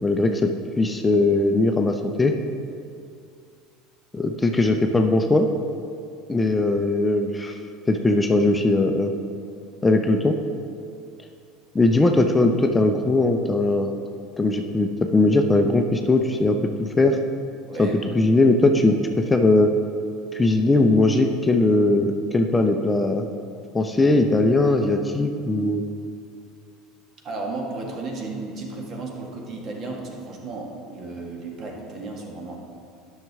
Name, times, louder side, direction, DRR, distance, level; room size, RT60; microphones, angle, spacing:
voice 1, 0.0-2.3 4.1-5.5 6.3-7.6 7.9-9.1 9.8-10.4 11.7-13.9 14.4-17.2 17.8-17.9 18.1-19.7 20.3-23.3 23.7-25.8, left 2 dB, 15° left, 4 dB, 0.6 m, -20 dB
voice 2, 17.7-18.0 27.2-32.6, right 3 dB, 45° right, 0 dB, 1.6 m, -34 dB
10.5 x 6.5 x 3.6 m, 2.4 s
hypercardioid pair, 75°, 0 cm